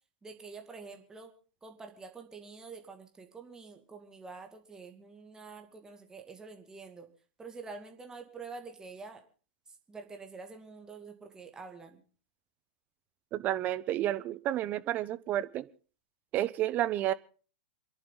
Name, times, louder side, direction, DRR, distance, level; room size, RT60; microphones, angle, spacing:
voice 1, 0.2-1.3 1.6-7.1 7.4-9.2 9.9-12.0, right 4 dB, 15° right, 4 dB, 2.4 m, -47 dB
voice 2, 13.3-15.7 16.3-17.1, right 13 dB, 35° right, 16 dB, 0.9 m, -30 dB
28.0 x 11.0 x 4.0 m, 0.39 s
hypercardioid pair, 100°, 5 cm